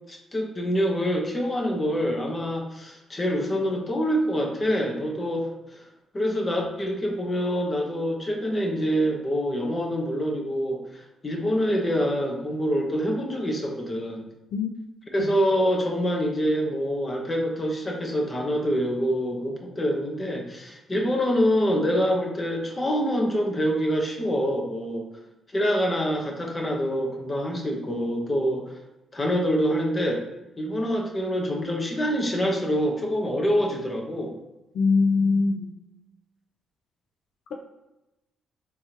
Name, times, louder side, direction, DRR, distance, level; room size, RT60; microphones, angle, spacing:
voice 1, 0.1-5.5 6.1-10.8 11.2-14.3 15.1-25.1 25.5-28.7 29.1-30.2 30.6-34.4, equal, 25° left, 0 dB, 1.0 m, -25 dB
voice 2, 34.7-35.7, left 4 dB, 70° left, 2 dB, 0.4 m, -22 dB
4.5 x 3.5 x 2.8 m, 0.98 s
cardioid pair, 90°, 0 cm